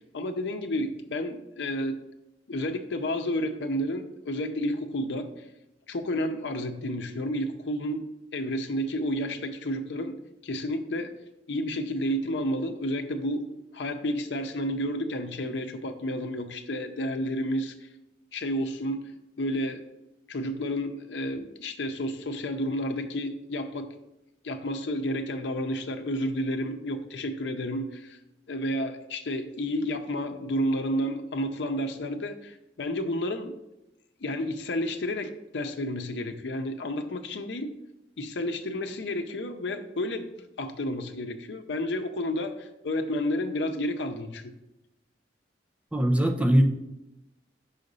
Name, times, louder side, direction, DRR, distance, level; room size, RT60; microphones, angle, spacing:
voice 1, 0.1-2.0 2.5-5.4 5.9-8.0 8.3-10.2 10.4-11.1 11.5-13.5 13.7-17.9 18.3-19.1 19.4-19.8 20.3-23.9 24.4-28.2 28.5-33.5 34.2-37.7 38.2-40.3 40.6-44.6, equal, 85° left, 6 dB, 0.6 m, -31 dB
voice 2, 45.9-46.6, equal, 5° right, 4 dB, 0.5 m, -21 dB
5.7 x 3.9 x 5.3 m, 0.90 s
head